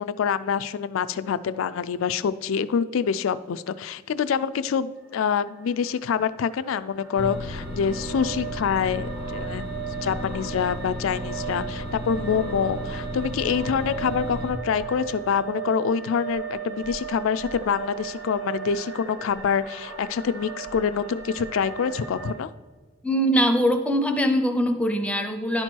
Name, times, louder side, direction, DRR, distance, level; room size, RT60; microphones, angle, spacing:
voice 1, 0.0-9.7 10.0-22.5, left 7 dB, 75° left, 14 dB, 0.3 m, -26 dB
sound 1, 5.0-22.3, right 8 dB, 85° right, 2.1 m, -37 dB
sound 2, 7.2-14.5, left 1 dB, 50° right, 1.7 m, -34 dB
voice 2, 23.0-25.6, equal, 5° left, 6 dB, 0.5 m, -22 dB
10.5 x 4.4 x 4.5 m, 1.4 s
head